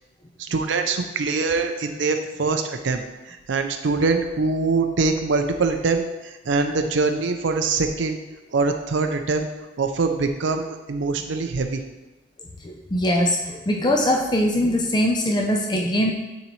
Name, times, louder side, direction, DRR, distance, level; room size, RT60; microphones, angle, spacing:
voice 1, 0.4-8.2 8.5-9.5 9.8-11.8, right 4 dB, 65° right, 6 dB, 0.5 m, -23 dB
voice 2, 12.6-16.1, left 1 dB, 20° left, 1 dB, 0.4 m, -22 dB
9.7 x 3.9 x 3.1 m, 1.1 s
head